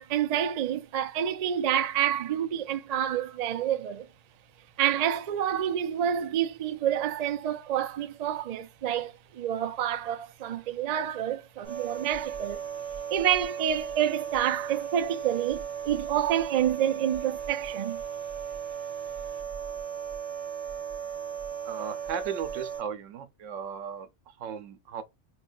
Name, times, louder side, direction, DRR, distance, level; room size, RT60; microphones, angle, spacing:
voice 1, 0.0-4.1 4.8-12.6 13.1-18.0, right 10 dB, 70° right, 0.3 m, -28 dB
sound 1, 11.6-22.8, right 7 dB, 35° right, 0.7 m, -36 dB
voice 2, 21.6-25.0, right 7 dB, 90° right, 1.0 m, -36 dB
4.3 x 2.2 x 2.3 m
omnidirectional pair, 1.3 m